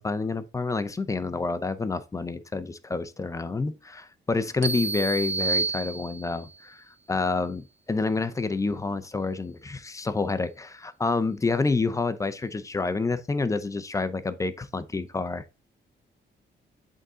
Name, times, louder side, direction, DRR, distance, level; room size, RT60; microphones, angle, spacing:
voice 1, 0.0-15.4, left 3 dB, 15° left, 0.5 m, -28 dB
sound 1, 4.6-6.5, right 4 dB, 80° right, 1.2 m, -29 dB
7.9 x 3.7 x 3.7 m
wide cardioid pair, 160°, 19 cm